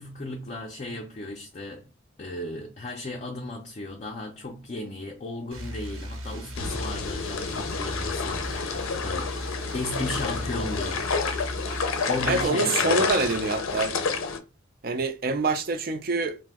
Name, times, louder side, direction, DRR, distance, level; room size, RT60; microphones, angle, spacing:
voice 1, 0.0-1.9 2.2-9.3 9.7-11.1 12.1-13.0, left 2 dB, 35° left, 0.4 m, -35 dB
sound 1, 5.5-12.4, equal, 90° right, 1.0 m, -37 dB
sound 2, 6.5-14.4, left 5 dB, 85° left, 0.5 m, -29 dB
voice 2, 12.3-13.9 14.8-16.4, right 3 dB, 45° right, 0.4 m, -26 dB
2.7 x 2.1 x 3.4 m
head